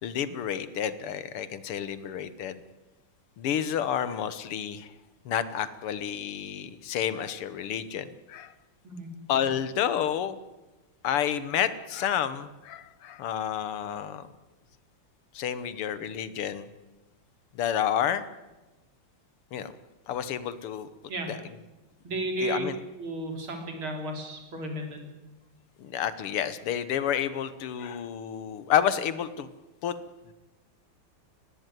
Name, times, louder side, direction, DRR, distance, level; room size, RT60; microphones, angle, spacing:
voice 1, 0.0-2.6 3.4-4.9 5.3-8.5 9.3-10.4 11.0-14.2 15.3-16.7 17.5-18.2 19.5-19.7 20.1-20.9 21.3-21.4 22.4-22.8 25.8-29.5 29.8-30.0, left 9 dB, 85° left, 14 dB, 2.0 m, -30 dB
voice 2, 22.0-22.6 23.0-25.2, right 2 dB, 65° right, 4 dB, 4.3 m, -34 dB
19.0 x 16.0 x 9.2 m, 1.1 s
omnidirectional pair, 2.4 m